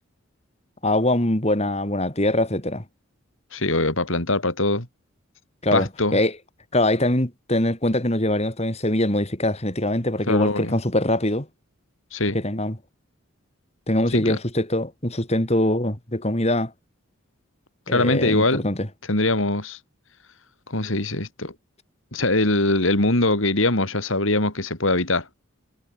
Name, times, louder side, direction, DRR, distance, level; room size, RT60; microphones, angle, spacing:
voice 1, 0.8-2.8 5.6-6.3 6.7-11.5 12.3-12.8 13.9-16.7 17.9-18.9, left 1 dB, 30° left, 3.3 m, -23 dB
voice 2, 3.5-4.9 5.7-6.2 10.3-10.8 12.1-12.4 14.1-14.4 17.9-18.6 19.1-19.8 20.7-21.5 22.1-25.3, left 2 dB, 70° left, 3.8 m, -22 dB
head